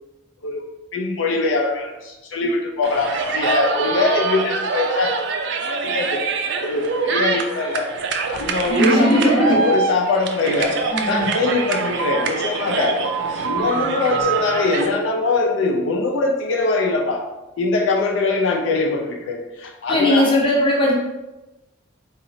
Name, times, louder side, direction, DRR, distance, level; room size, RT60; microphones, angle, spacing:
voice 1, 0.9-5.1 5.7-6.2 6.6-7.9 8.3-10.8 11.1-13.0 13.3-17.2 17.6-20.3, left 3 dB, 70° left, 1 dB, 0.4 m, -22 dB
sound 1, 2.8-14.9, right 4 dB, 60° right, 0.4 m, -24 dB
voice 2, 8.7-9.5 10.9-11.3 19.9-20.9, equal, 25° left, -3 dB, 0.8 m, -18 dB
3.9 x 3.0 x 2.6 m, 1.0 s
head